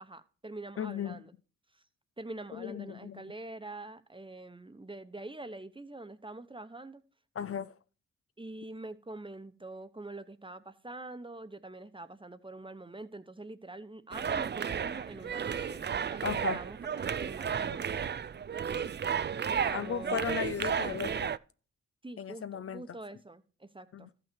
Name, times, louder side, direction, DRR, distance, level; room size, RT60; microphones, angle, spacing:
voice 1, 0.0-1.3 1.7-1.8 2.2-7.0 8.4-17.8 19.4-20.2 22.0-24.1, right 2 dB, 15° right, 1.0 m, -45 dB
voice 2, 0.8-1.2 2.5-3.2 7.4-7.7 16.2-16.6 17.9-18.0 19.7-21.3 22.2-22.8 23.9-24.1, left 8 dB, 50° left, 0.5 m, -36 dB
sound 1, 14.1-21.4, right 7 dB, 35° right, 0.4 m, -33 dB
13.5 x 5.9 x 4.5 m
cardioid pair, 50°, 30 cm